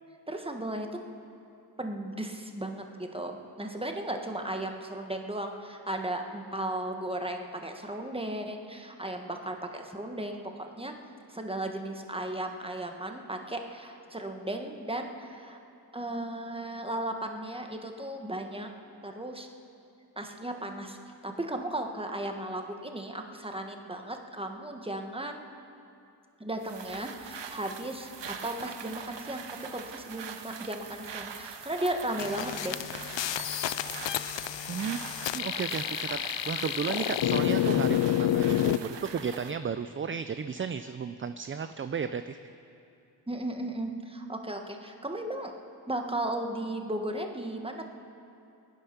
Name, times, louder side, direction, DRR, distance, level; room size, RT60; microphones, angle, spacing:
voice 1, 0.3-1.0 1.8-10.9 11.3-15.6 15.9-18.7 19.0-19.5 20.2-21.0 21.2-25.4 26.4-32.8 43.3-45.5 45.9-47.9, right 1 dB, 15° right, 4 dB, 1.3 m, -35 dB
sound 1, 26.6-39.6, right 6 dB, 75° right, 0.9 m, -43 dB
sound 2, 32.2-38.8, left 12 dB, 85° left, 0.5 m, -29 dB
voice 2, 34.7-35.0 35.3-42.4, right 6 dB, 30° right, 11 dB, 0.4 m, -34 dB
21.5 x 10.0 x 5.9 m, 2.7 s
wide cardioid pair, 90°, 43 cm